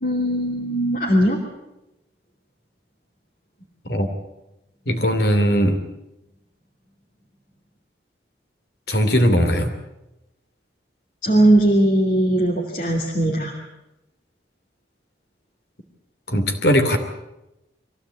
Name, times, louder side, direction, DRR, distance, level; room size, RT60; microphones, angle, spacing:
voice 1, 0.0-1.4 11.2-13.5, right 1 dB, 45° left, -2 dB, 2.8 m, -19 dB
voice 2, 4.9-5.8 8.9-9.7 16.3-17.0, equal, 60° left, 6 dB, 2.9 m, -19 dB
23.5 x 16.5 x 8.6 m, 0.93 s
head